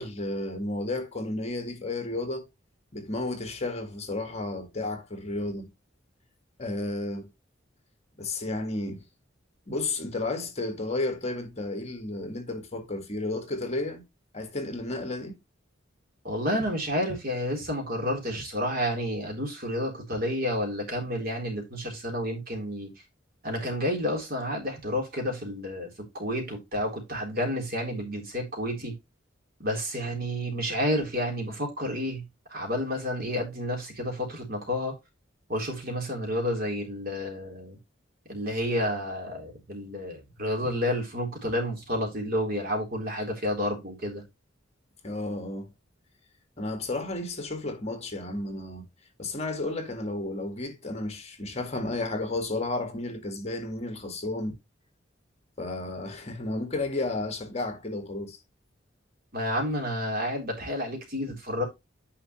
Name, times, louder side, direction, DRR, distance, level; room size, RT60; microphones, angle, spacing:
voice 1, 0.0-2.5 2.9-5.7 6.6-7.3 8.2-9.0 9.7-14.0 14.3-15.4 45.0-45.7 46.6-48.8 49.2-54.6 55.6-58.4, left 2 dB, 35° left, 1.8 m, -32 dB
voice 2, 16.2-22.9 23.4-28.9 29.6-32.2 32.5-34.9 35.5-37.8 38.3-44.2 59.3-61.6, equal, 50° right, 3.7 m, -30 dB
9.7 x 5.6 x 3.1 m
head